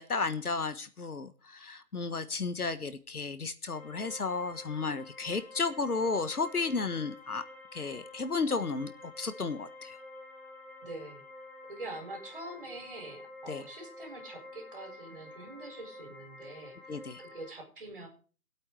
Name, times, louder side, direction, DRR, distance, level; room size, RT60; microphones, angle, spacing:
voice 1, 0.0-7.4 7.7-8.9 9.2-10.0 13.5-13.6 16.9-17.2, left 4 dB, 70° left, 12 dB, 1.4 m, -33 dB
sound 1, 3.7-17.5, left 2 dB, 30° left, 7.0 m, -49 dB
voice 2, 10.8-16.9 17.2-18.1, right 2 dB, 35° right, 2 dB, 4.8 m, -45 dB
18.5 x 8.5 x 4.7 m, 0.39 s
figure-of-eight pair, 170°, 46 cm